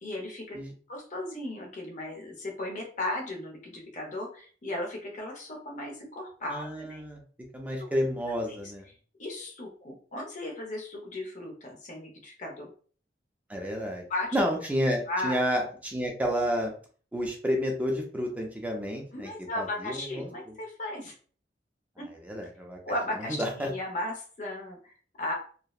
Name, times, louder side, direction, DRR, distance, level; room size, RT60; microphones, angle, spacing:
voice 1, 0.0-0.6 0.9-7.0 9.2-12.7 14.1-14.4 15.1-15.4 19.1-21.1 22.0-22.1 22.8-25.3, left 1 dB, 45° left, 1 dB, 0.7 m, -36 dB
voice 2, 6.5-7.2 7.5-8.8 13.5-14.0 14.3-16.7 17.1-19.3 19.6-20.6 22.2-22.8 23.3-23.7, equal, 10° right, 1 dB, 0.4 m, -30 dB
2.7 x 2.0 x 2.3 m, 0.42 s
head